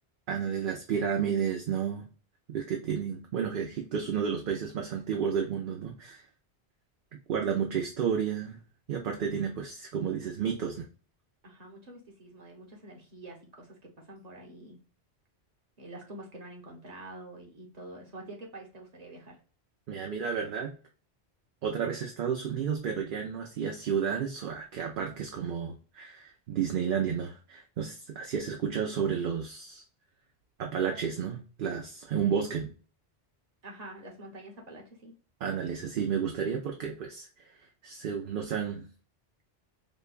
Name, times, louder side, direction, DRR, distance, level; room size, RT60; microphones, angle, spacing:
voice 1, 0.3-2.1 2.5-6.3 7.3-8.6 8.9-10.9 19.9-20.8 21.6-29.8 30.6-32.7 35.4-37.3 37.8-38.9, right 7 dB, 60° right, 2 dB, 0.7 m, -31 dB
voice 2, 11.4-14.8 15.8-19.4 33.6-35.1, right 2 dB, 40° right, 0 dB, 1.2 m, -47 dB
5.1 x 2.2 x 2.4 m, 0.38 s
omnidirectional pair, 1.1 m